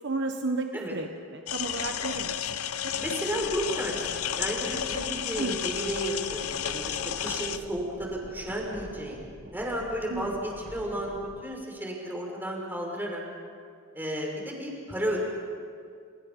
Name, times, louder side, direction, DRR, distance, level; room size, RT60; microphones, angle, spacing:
voice 1, 0.0-2.3 2.6-2.9 5.4-5.6 10.1-10.3, right 3 dB, 55° right, 5 dB, 1.4 m, -33 dB
sound 1, 1.5-7.6, left 9 dB, 85° left, 1.0 m, -32 dB
voice 2, 3.0-9.3 9.5-13.2 13.9-15.2, equal, 10° right, -1 dB, 5.7 m, -33 dB
sound 2, 3.3-11.4, right 1 dB, 40° right, 1.8 m, -47 dB
30.0 x 29.5 x 5.5 m, 2.2 s
head